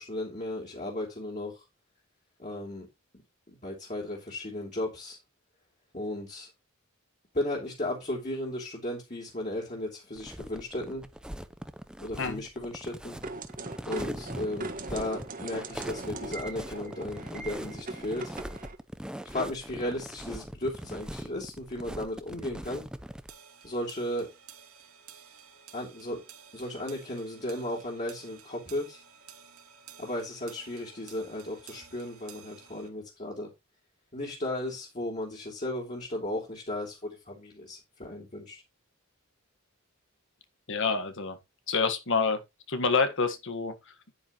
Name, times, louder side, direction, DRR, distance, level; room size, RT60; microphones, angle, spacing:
voice 1, 0.0-1.7 2.4-2.9 3.5-5.2 5.9-6.5 7.3-11.1 12.0-13.2 13.9-18.4 19.2-22.9 23.6-24.3 25.7-26.2 26.5-29.0 30.0-33.5 34.1-38.6, left 1 dB, 35° left, 3.2 m, -35 dB
sound 1, 10.1-23.3, equal, 5° right, 0.7 m, -41 dB
sound 2, 13.2-18.8, right 3 dB, 40° right, 1.5 m, -40 dB
sound 3, 23.3-32.9, right 8 dB, 80° right, 2.7 m, -53 dB
voice 2, 40.7-41.4 41.7-42.4 42.7-43.9, left 4 dB, 60° left, 1.6 m, -27 dB
10.0 x 9.6 x 3.1 m
head